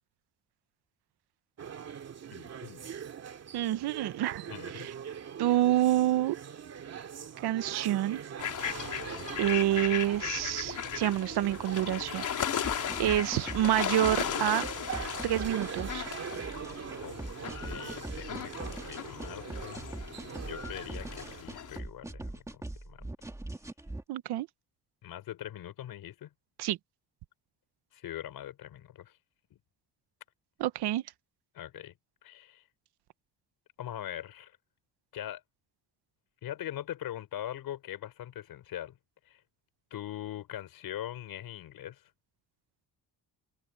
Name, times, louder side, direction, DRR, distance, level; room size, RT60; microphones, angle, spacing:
sound 1, 1.6-21.4, right 8 dB, 40° right, 2.3 m, -43 dB
voice 1, 2.3-2.9 4.5-4.9 8.7-9.3 17.0-17.2 17.4-19.9 20.4-23.1 25.0-26.3 27.9-29.2 29.5-29.6 31.5-31.9 32.2-32.6 33.8-34.6 35.1-35.4 36.4-39.0 39.2-39.4 39.9-42.0, left 12 dB, 70° left, 4.9 m, -42 dB
voice 2, 3.5-4.5 4.7-4.9 5.4-6.4 7.4-8.2 9.4-12.2 12.5-14.6 15.2-16.1 24.1-24.5 26.6-26.8 30.6-31.0, right 13 dB, 90° right, 1.0 m, -28 dB
sound 2, 8.4-21.8, left 9 dB, 50° left, 4.1 m, -37 dB
sound 3, 12.6-24.0, right 1 dB, 10° right, 2.2 m, -42 dB
cardioid pair, 165°, 38 cm